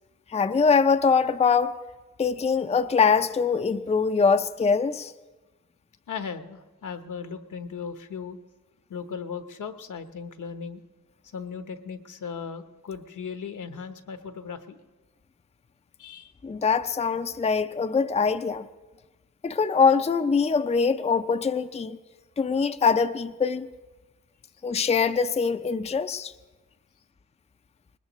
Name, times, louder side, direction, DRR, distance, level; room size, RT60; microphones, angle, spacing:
voice 1, 0.3-1.8 2.2-5.1 16.4-18.7 19.4-22.0 22.4-23.7 24.6-26.3, left 5 dB, 20° left, 0.5 m, -23 dB
voice 2, 6.1-8.4 8.9-10.8 11.3-14.8 16.0-16.3, left 6 dB, 75° left, 1.0 m, -37 dB
21.0 x 20.0 x 3.1 m
cardioid pair, 75°, 31 cm